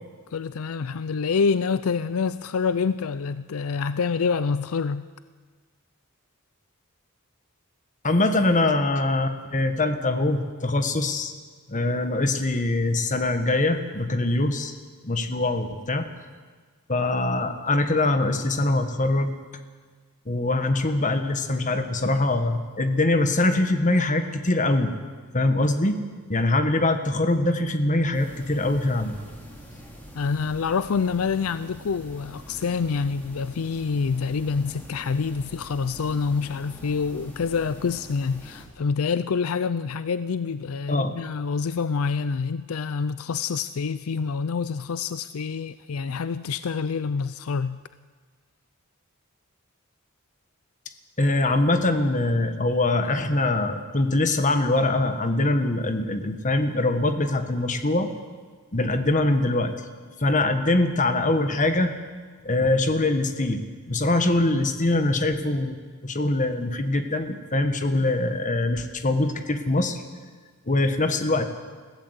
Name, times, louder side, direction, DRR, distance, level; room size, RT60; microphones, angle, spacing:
voice 1, 0.3-5.0 30.2-47.8, left 5 dB, 75° left, 0.5 m, -27 dB
voice 2, 8.0-11.3 11.7-14.7 15.0-16.1 16.9-19.4 20.3-24.9 25.3-26.0 26.3-29.2 40.9-41.1 51.2-58.1 58.7-59.7 60.2-61.9 62.4-65.7 66.0-70.0 70.7-71.4, left 2 dB, 35° left, 1.5 m, -23 dB
sound 1, 28.1-38.7, equal, 10° left, 3.9 m, -44 dB
21.0 x 15.5 x 8.2 m
head